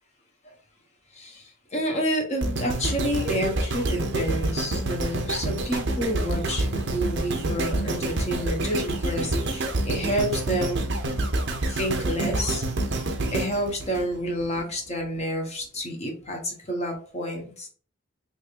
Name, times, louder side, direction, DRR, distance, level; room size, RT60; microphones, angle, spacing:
voice 1, 1.1-10.8 11.6-12.6 13.3-17.7, equal, 35° left, 1 dB, 1.0 m, -29 dB
sound 1, 2.4-14.6 15.1-15.2, right 2 dB, 60° right, 0.8 m, -27 dB
3.5 x 3.4 x 2.5 m, 0.43 s
head